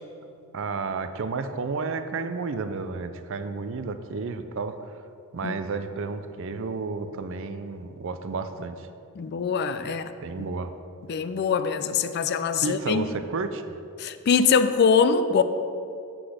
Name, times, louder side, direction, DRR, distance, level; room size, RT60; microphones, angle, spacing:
voice 1, 0.3-4.8 5.3-8.9 9.8-10.7 12.6-13.8, right 4 dB, 60° right, 10 dB, 0.5 m, -32 dB
voice 2, 9.2-10.1 10.4-10.5 11.1-13.0 14.0-15.4, left 6 dB, 50° left, 11 dB, 0.3 m, -23 dB
7.8 x 6.1 x 5.0 m, 2.6 s
head